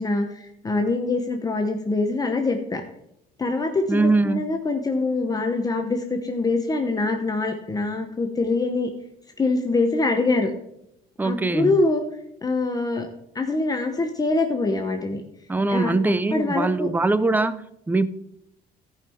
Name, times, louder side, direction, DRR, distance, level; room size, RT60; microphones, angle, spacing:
voice 1, 0.0-2.8 3.4-8.9 9.4-10.5 11.2-12.0 12.4-13.1 13.3-15.2 15.7-15.9 16.3-16.9, left 3 dB, 20° left, 3 dB, 1.0 m, -24 dB
voice 2, 3.9-4.5 11.2-11.7 15.5-18.1, right 3 dB, 10° right, 15 dB, 0.5 m, -22 dB
13.5 x 5.6 x 4.5 m, 0.78 s
cardioid pair, 110°, 17 cm